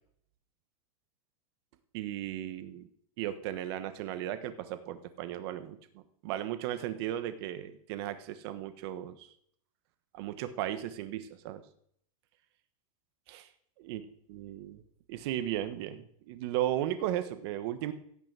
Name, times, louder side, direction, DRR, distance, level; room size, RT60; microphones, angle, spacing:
voice 1, 1.9-2.9 3.2-9.3 10.1-11.6 13.3-13.5 13.9-14.0 14.3-14.8 15.1-17.9, right 12 dB, 45° right, 10 dB, 1.3 m, -36 dB
16.5 x 6.1 x 7.5 m, 0.66 s
supercardioid pair, 170°, 18 cm